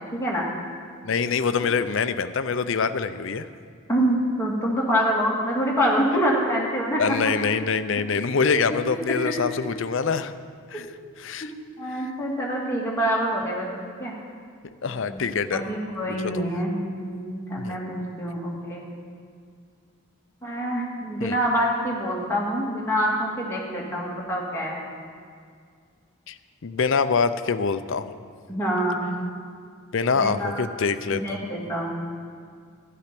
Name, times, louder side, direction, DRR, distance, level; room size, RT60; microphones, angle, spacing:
voice 1, 0.1-0.5 3.9-7.0 9.1-9.3 10.7-10.9 11.8-14.1 14.9-15.2 15.5-18.9 20.4-24.8 28.5-29.1 30.1-30.6 31.1-31.9, equal, 10° left, -4 dB, 2.0 m, -26 dB
voice 2, 1.0-3.5 7.0-10.3 10.7-10.9 11.2-11.5 14.8-15.6 16.3-16.4 17.6-17.7 21.2-21.4 26.3-26.4 26.6-28.2 29.9-31.2, left 5 dB, 60° left, 11 dB, 0.5 m, -24 dB
12.0 x 10.0 x 6.0 m, 2.1 s
head